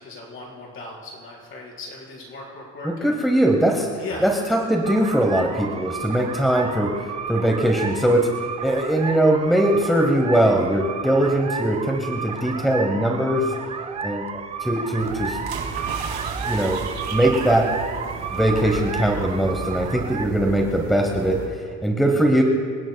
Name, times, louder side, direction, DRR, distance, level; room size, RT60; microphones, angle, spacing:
voice 1, 0.0-3.2 4.0-4.3, left 2 dB, 40° left, -4 dB, 4.6 m, -37 dB
voice 2, 2.8-3.9 4.2-8.3 8.6-13.5 14.0-15.4 16.4-16.8 17.1-17.8 18.3-21.6 21.8-22.4, right 1 dB, ahead, 2 dB, 0.9 m, -21 dB
sound 1, 4.8-20.3, right 6 dB, 20° right, 0.4 m, -32 dB
sound 2, 15.0-21.5, right 5 dB, 55° right, 4.8 m, -34 dB
sound 3, 15.5-18.5 18.8-19.0, right 7 dB, 80° right, 2.7 m, -39 dB
27.0 x 17.5 x 2.3 m, 2.2 s
cardioid pair, 170°, 31 cm